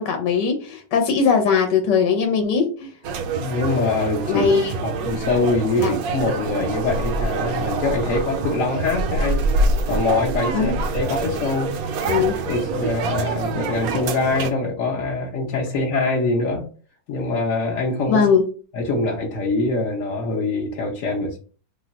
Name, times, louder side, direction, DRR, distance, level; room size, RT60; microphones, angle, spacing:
voice 1, 0.0-2.9 4.3-4.7 5.8-5.9 10.5-10.7 12.0-12.3 18.1-18.4, left 6 dB, 80° left, 4 dB, 1.3 m, -19 dB
sound 1, 3.0-14.5, right 3 dB, 70° right, 0.9 m, -25 dB
voice 2, 3.3-4.4 4.8-9.5 9.9-11.7 12.1-16.7 17.1-18.3 18.7-21.4, left 3 dB, 60° left, -2 dB, 0.9 m, -24 dB
3.0 x 2.1 x 3.8 m, 0.38 s
omnidirectional pair, 1.9 m